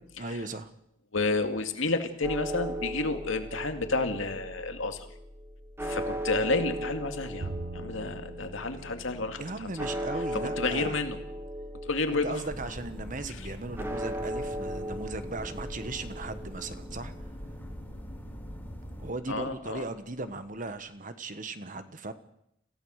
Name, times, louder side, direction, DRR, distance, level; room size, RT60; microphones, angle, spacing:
voice 1, 0.2-0.7 9.3-11.0 12.1-17.3 19.0-22.1, right 2 dB, 40° right, 10 dB, 1.3 m, -37 dB
voice 2, 1.1-5.1 5.8-9.9 10.3-11.2 11.8-12.4 13.3-13.4 19.3-19.8, left 3 dB, 80° left, 7 dB, 2.3 m, -31 dB
sound 1, 2.2-20.1, equal, 10° right, 1.9 m, -38 dB
Bowed string instrument, 7.4-10.8, right 3 dB, 80° right, 1.2 m, -44 dB
sound 2, 12.5-19.1, equal, 10° left, 3.3 m, -42 dB
26.5 x 16.0 x 6.5 m, 0.77 s
head